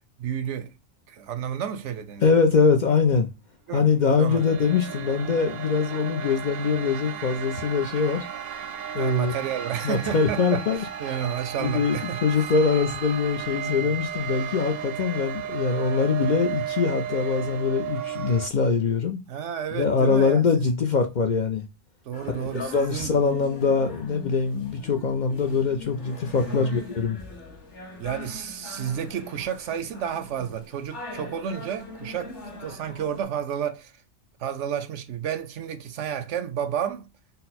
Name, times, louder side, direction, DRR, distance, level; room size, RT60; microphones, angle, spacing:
voice 1, 0.2-0.7 1.1-2.2 3.7-3.9 4.2-4.5 9.0-12.2 13.7-13.9 19.3-20.4 22.0-23.1 26.4-26.8 28.0-32.3 32.6-33.9 34.4-37.1, right 8 dB, 90° right, 1.0 m, -31 dB
voice 2, 2.2-3.3 3.7-8.2 8.9-9.4 9.8-10.8 11.1-11.2 11.6-19.2 19.8-21.7 22.4-27.2, left 5 dB, 55° left, 0.5 m, -23 dB
sound 1, 3.9-18.5, right 9 dB, 65° right, 0.7 m, -34 dB
sound 2, 22.1-33.2, left 2 dB, 85° left, 1.6 m, -42 dB
4.0 x 2.1 x 4.0 m
omnidirectional pair, 1.2 m